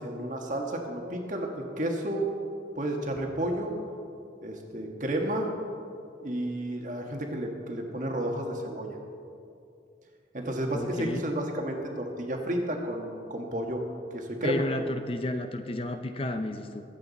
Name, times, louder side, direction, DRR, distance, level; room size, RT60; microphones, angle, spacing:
voice 1, 0.0-2.3 2.7-3.7 4.4-5.5 6.2-8.9 10.3-13.8 14.1-14.6, right 1 dB, 45° right, 2 dB, 1.6 m, -31 dB
voice 2, 10.7-11.2 14.4-16.8, left 1 dB, 30° left, 7 dB, 0.6 m, -32 dB
22.5 x 8.3 x 4.1 m, 2.6 s
head